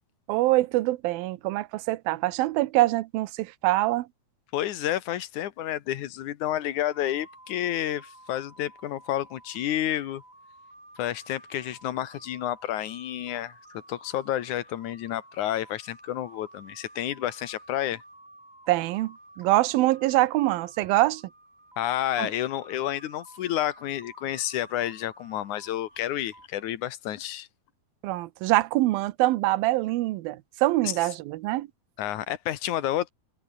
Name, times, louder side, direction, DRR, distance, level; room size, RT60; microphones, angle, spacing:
voice 1, 0.3-4.1 18.7-21.2 22.2-22.3 28.0-31.7, right 18 dB, 80° right, 2.6 m, -24 dB
voice 2, 4.5-10.2 11.0-13.5 13.9-18.0 21.8-27.5 30.8-30.9 32.0-33.1, left 12 dB, 65° left, 2.4 m, -30 dB
sound 1, 6.9-26.7, right 1 dB, 10° right, 4.5 m, -52 dB
omnidirectional pair, 4.3 m